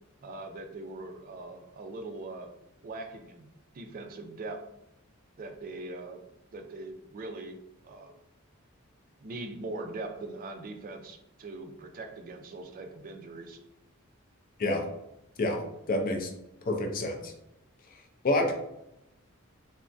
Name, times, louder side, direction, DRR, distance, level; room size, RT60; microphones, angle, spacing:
voice 1, 0.2-2.5 2.8-4.6 5.4-6.2 6.5-7.6 7.8-8.2 9.2-13.6, right 2 dB, 40° right, 5 dB, 0.4 m, -41 dB
voice 2, 15.9-16.3 16.7-17.3 18.2-18.5, left 2 dB, 40° left, 3 dB, 0.5 m, -27 dB
3.4 x 2.1 x 2.5 m, 0.85 s
head